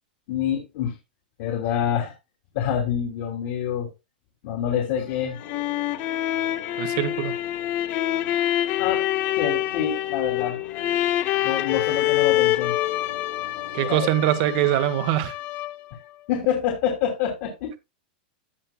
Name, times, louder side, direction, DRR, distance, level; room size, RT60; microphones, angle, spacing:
voice 1, 0.3-0.9 1.4-2.1 2.5-3.9 4.4-5.4 8.8-9.0 9.3-10.6 11.4-12.7 13.8-14.1 16.3-17.8, left 9 dB, 50° left, 2.6 m, -26 dB
sound 1, 5.1-16.0, left 14 dB, 35° left, 0.5 m, -26 dB
sound 2, 5.4-14.7, left 6 dB, 90° left, 4.2 m, -44 dB
voice 2, 6.8-7.3 13.7-15.3, right 14 dB, 45° right, 1.1 m, -23 dB
16.0 x 5.6 x 2.2 m
supercardioid pair, 150°, 5 cm